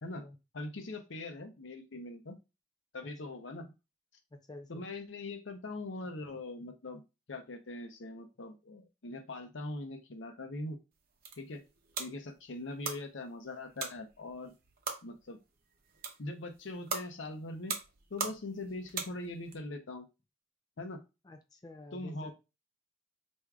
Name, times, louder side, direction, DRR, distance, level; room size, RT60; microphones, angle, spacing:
voice 1, 0.5-2.4 2.9-3.7 4.7-7.0 7.3-10.8 11.4-11.6 12.0-14.5 15.0-15.4 16.2-17.7 18.1-20.1 20.8-21.0 21.9-22.3, left 2 dB, 90° left, 6 dB, 0.7 m, -41 dB
voice 2, 4.3-4.9 21.2-22.3, left 2 dB, 20° left, 4 dB, 0.4 m, -49 dB
sound 1, 10.9-19.6, right 5 dB, 55° right, 0.7 m, -42 dB
4.6 x 2.6 x 2.3 m, 0.27 s
head